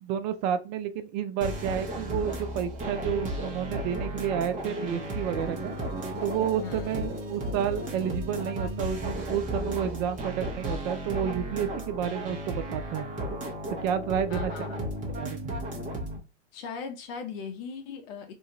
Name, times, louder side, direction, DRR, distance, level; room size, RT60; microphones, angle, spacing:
voice 1, 0.0-5.7 6.2-13.1 13.8-14.5 15.2-15.5, right 9 dB, 40° right, 0.4 m, -30 dB
sound 1, 1.4-16.2, equal, 20° right, 0.9 m, -34 dB
sound 2, 3.6-9.6, right 5 dB, 75° right, 1.1 m, -49 dB
voice 2, 6.6-7.1 14.3-14.8 16.5-18.3, left 6 dB, 50° left, 0.7 m, -39 dB
2.6 x 2.3 x 2.9 m
hypercardioid pair, 120°, 36 cm